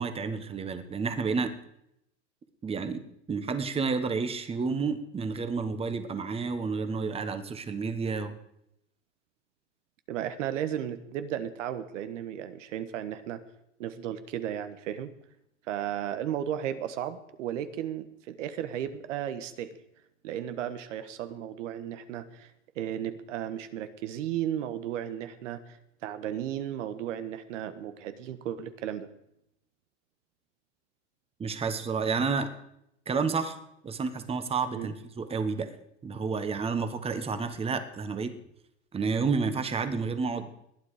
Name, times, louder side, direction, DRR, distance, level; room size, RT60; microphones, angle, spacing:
voice 1, 0.0-1.5 2.6-3.0 3.3-8.3 31.4-32.5 33.1-33.6 33.8-35.7 36.0-38.3 38.9-40.6, right 5 dB, 15° right, 10 dB, 1.3 m, -30 dB
voice 2, 10.1-13.4 13.8-15.1 15.7-19.8 20.2-29.1 34.7-34.9, right 10 dB, 80° right, 11 dB, 1.4 m, -34 dB
19.5 x 9.8 x 5.0 m, 0.78 s
supercardioid pair, 130°, 37 cm